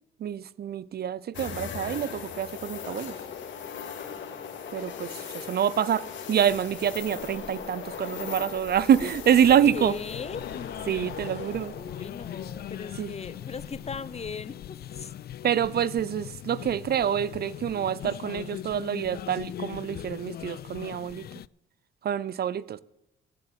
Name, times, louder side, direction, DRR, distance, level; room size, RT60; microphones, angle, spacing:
voice 1, 0.2-3.2 4.7-9.9 10.9-11.7 13.0-13.1 15.4-21.3 22.0-22.8, right 9 dB, 50° right, 0.6 m, -26 dB
sound 1, 1.3-14.4 14.8-14.9 17.3-17.7, left 7 dB, 70° left, 2.3 m, -39 dB
sound 2, 6.4-15.0, equal, 15° right, 3.5 m, -53 dB
sound 3, 9.4-21.5, left 12 dB, 55° left, 0.4 m, -40 dB
voice 2, 9.4-10.8 11.7-15.1, left 5 dB, 30° left, 0.8 m, -38 dB
16.0 x 7.7 x 7.6 m
cardioid pair, 90°, 20 cm